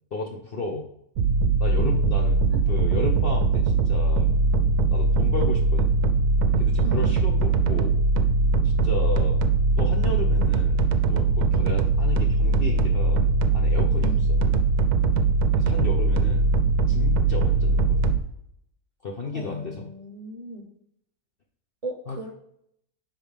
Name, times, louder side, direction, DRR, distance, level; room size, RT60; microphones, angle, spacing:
voice 1, 0.1-0.9 1.6-2.4 2.7-4.4 4.9-5.9 6.6-8.0 8.6-9.4 9.8-13.2 13.5-14.4 15.6-16.5 16.9-18.2 19.0-19.9 22.1-22.2, left 3 dB, 50° left, 0 dB, 0.7 m, -33 dB
sound 1, 1.2-18.2, right 3 dB, 70° right, 1.1 m, -21 dB
voice 2, 19.3-20.7 21.8-22.3, right 1 dB, 30° right, 0 dB, 0.7 m, -37 dB
10.5 x 4.1 x 3.4 m, 0.73 s
omnidirectional pair, 1.8 m